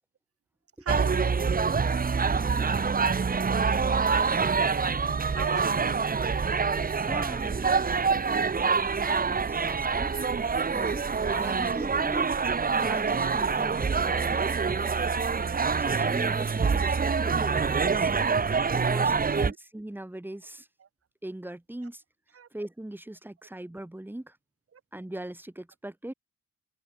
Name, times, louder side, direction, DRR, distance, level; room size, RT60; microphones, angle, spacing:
voice 1, 0.8-1.3 4.1-5.0 5.3-6.1 11.1-11.4 11.9-12.0 13.0-13.4 16.7-16.9 19.2-19.6 20.8-20.9 22.3-22.5 24.7-24.8, right 7 dB, 50° right, 5.0 m, -40 dB
sound 1, 0.9-19.5, right 5 dB, 30° right, 1.7 m, -26 dB
voice 2, 2.2-2.8 7.1-8.0 9.0-10.1 10.7-12.3 12.7-15.0 15.8-18.1 18.7-20.7 21.2-22.0 22.5-24.3 24.9-26.1, right 1 dB, 5° right, 2.5 m, -40 dB
open air
cardioid pair, 90°, 30 cm